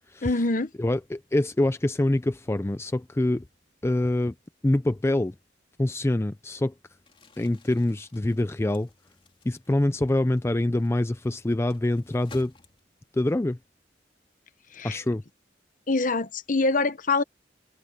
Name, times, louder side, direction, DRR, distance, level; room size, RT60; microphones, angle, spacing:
voice 1, 0.2-0.7 14.7-15.0 15.9-17.2, left 3 dB, 45° left, 1.1 m, -24 dB
voice 2, 0.8-3.4 3.8-4.3 4.6-5.3 5.8-6.7 7.4-8.9 9.5-12.5 13.1-13.6 14.8-15.2, left 1 dB, 15° left, 0.4 m, -25 dB
Crumpling crinkling, 7.0-13.2, left 3 dB, 30° left, 3.1 m, -54 dB
head